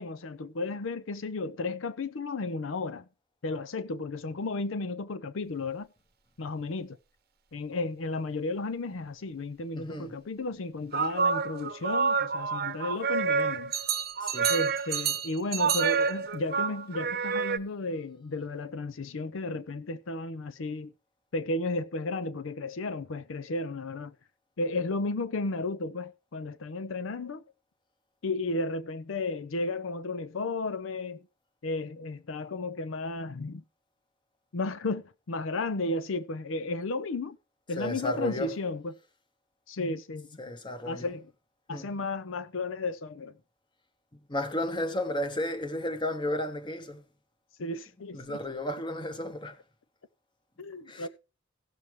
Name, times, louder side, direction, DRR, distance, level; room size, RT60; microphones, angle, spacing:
voice 1, 0.0-3.1 3.4-5.9 6.4-7.0 7.5-13.7 14.5-20.9 21.3-24.1 24.6-27.4 28.2-31.2 31.6-33.6 34.5-37.4 37.7-38.9 39.7-40.3 40.9-41.3 41.7-43.3 47.6-48.4 50.6-51.1, left 2 dB, 80° left, 0.6 m, -33 dB
voice 2, 9.7-10.1 14.2-14.5 37.8-38.6 40.4-41.1 41.7-41.9 44.3-47.0 48.1-49.6 50.9-51.1, left 1 dB, 25° left, 1.2 m, -33 dB
sound 1, 10.9-17.6, right 6 dB, 50° right, 0.8 m, -28 dB
17.0 x 6.8 x 3.1 m
head